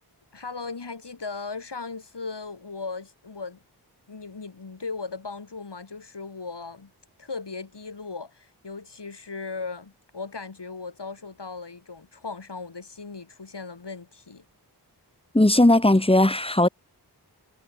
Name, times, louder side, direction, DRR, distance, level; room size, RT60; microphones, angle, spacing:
voice 1, 0.3-3.6 4.1-6.9 7.2-14.4, left 4 dB, 85° left, 4.8 m, -37 dB
voice 2, 15.3-16.7, left 1 dB, 15° left, 1.5 m, -18 dB
wide cardioid pair, 60°, 40 cm